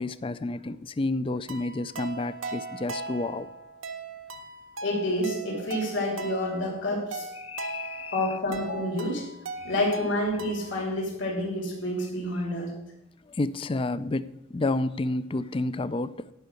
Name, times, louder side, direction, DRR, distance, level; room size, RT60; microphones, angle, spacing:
voice 1, 0.0-3.5 7.4-8.4 9.6-9.7 13.3-16.3, left 2 dB, 25° left, 15 dB, 0.3 m, -30 dB
sound 1, 1.5-10.9, right 3 dB, 75° right, 0.9 m, -39 dB
voice 2, 4.8-7.3 8.1-9.3 9.6-12.7, left 1 dB, 60° left, -3 dB, 3.0 m, -28 dB
10.5 x 5.6 x 7.7 m, 0.84 s
head